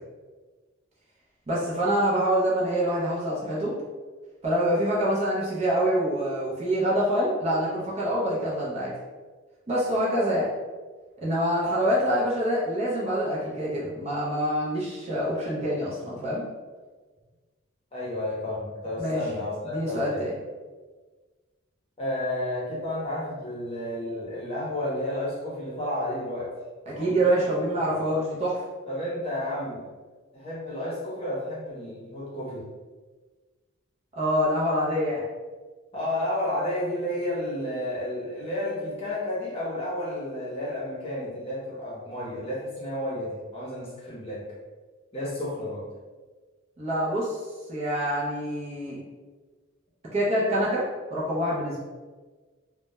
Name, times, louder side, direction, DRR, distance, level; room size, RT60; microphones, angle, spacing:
voice 1, 1.5-3.7 4.4-8.9 9.7-10.5 11.2-16.4 19.0-19.2 19.7-20.3 26.9-28.6 34.1-35.2 46.8-47.4 47.7-49.0 50.1-50.8 51.1-51.8, equal, 30° right, -6 dB, 0.5 m, -26 dB
voice 2, 17.9-20.3 22.0-26.5 26.9-27.2 27.9-28.0 28.9-29.9 30.3-32.6 35.9-44.4 45.1-45.9, left 1 dB, 30° left, -7 dB, 0.7 m, -31 dB
2.2 x 2.1 x 2.9 m, 1.4 s
head